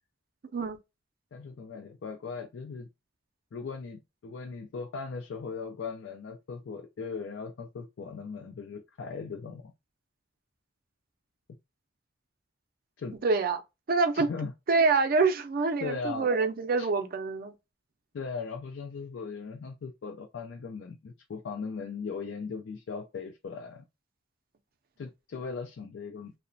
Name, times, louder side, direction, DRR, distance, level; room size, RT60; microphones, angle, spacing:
voice 1, 1.3-2.9 3.5-9.7 13.0-13.2 14.1-14.5 15.8-16.3 16.8-16.9 18.1-23.8 25.0-26.3, left 5 dB, 80° left, 0.4 m, -38 dB
voice 2, 13.2-13.6 13.9-14.3 14.7-17.5, right 4 dB, 55° right, 0.4 m, -26 dB
2.9 x 2.1 x 2.5 m
head